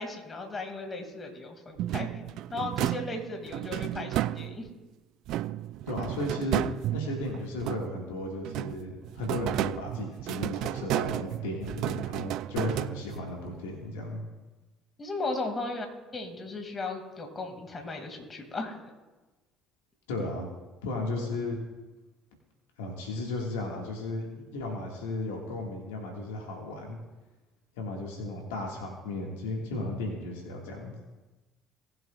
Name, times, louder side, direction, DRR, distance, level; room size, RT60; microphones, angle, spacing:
voice 1, 0.0-4.7 15.0-15.9 16.1-18.8, left 3 dB, 30° left, 3 dB, 2.4 m, -36 dB
sound 1, 1.8-4.8 5.3-8.1 8.4-13.4, right 14 dB, 65° right, 0.3 m, -33 dB
voice 2, 5.9-6.7 6.9-14.3 20.1-20.5 20.8-21.6 22.8-27.0 27.8-31.0, left 2 dB, 80° left, 0 dB, 1.8 m, -35 dB
18.5 x 7.7 x 2.4 m, 1.1 s
hypercardioid pair, 55°, 0 cm